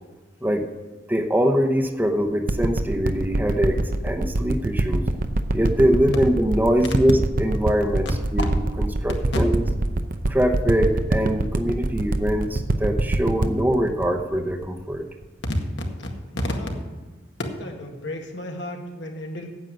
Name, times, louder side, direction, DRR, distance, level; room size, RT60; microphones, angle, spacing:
voice 1, 1.1-5.0 5.5-9.6 10.3-15.0, equal, 10° right, 4 dB, 0.9 m, -23 dB
sound 1, 2.5-15.2 15.8-15.9, right 2 dB, 50° right, 0.7 m, -24 dB
voice 2, 16.0-16.7 17.4-19.5, left 1 dB, 80° left, 2 dB, 1.9 m, -32 dB
9.3 x 8.1 x 7.6 m, 1.3 s
head